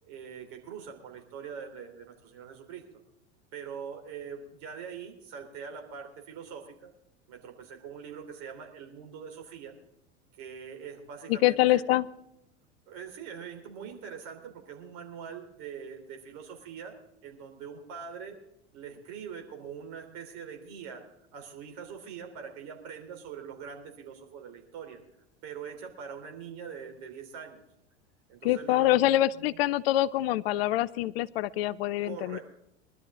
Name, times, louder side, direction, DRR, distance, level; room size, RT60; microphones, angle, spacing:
voice 1, 0.0-2.8 3.5-6.9 7.3-9.7 10.4-11.8 12.9-16.9 17.2-18.4 18.7-21.0 21.3-25.0 25.4-27.6 28.3-29.6 32.0-32.4, right 7 dB, 50° right, 3 dB, 3.7 m, -43 dB
voice 2, 11.3-12.1 28.4-32.4, left 15 dB, 55° left, 18 dB, 0.6 m, -25 dB
21.5 x 12.5 x 3.8 m, 0.81 s
figure-of-eight pair, 85°, 36 cm